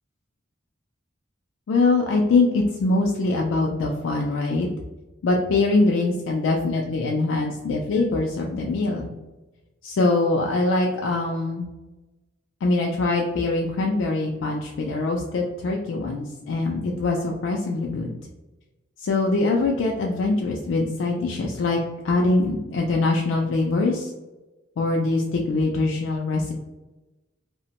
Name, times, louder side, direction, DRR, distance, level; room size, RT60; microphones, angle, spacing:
voice 1, 1.7-4.7 5.2-9.1 9.8-11.7 12.6-18.2 19.0-21.8 22.0-24.1 24.8-26.6, left 3 dB, 85° left, 0 dB, 0.3 m, -23 dB
2.8 x 2.1 x 2.8 m, 1.1 s
head